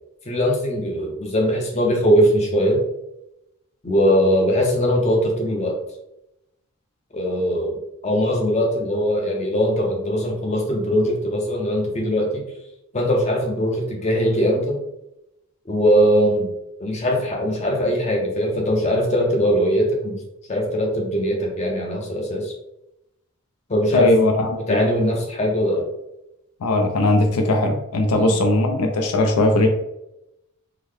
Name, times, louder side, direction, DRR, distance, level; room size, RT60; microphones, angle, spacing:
voice 1, 0.3-2.9 3.8-5.8 7.1-7.8 8.0-12.5 12.9-14.8 15.7-16.5 16.8-20.2 20.5-22.5 23.7-24.1 24.7-25.9 28.1-28.3, equal, 30° left, 0 dB, 0.6 m, -21 dB
voice 2, 23.9-24.6 26.6-29.7, left 2 dB, 90° left, 4 dB, 0.5 m, -19 dB
3.7 x 2.1 x 3.2 m, 0.87 s
head